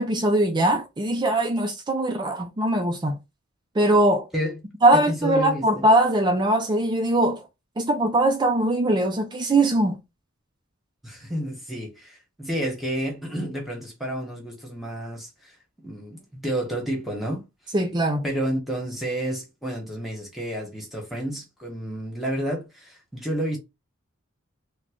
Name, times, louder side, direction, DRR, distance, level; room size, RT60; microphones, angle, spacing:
voice 1, 0.0-3.2 3.8-4.3 4.8-7.4 7.8-10.0 17.7-18.2, right 1 dB, 20° right, 0.4 m, -21 dB
voice 2, 4.9-5.8 11.0-15.5 15.8-17.4 18.2-23.6, right 1 dB, ahead, 1.2 m, -30 dB
3.6 x 2.2 x 3.5 m
head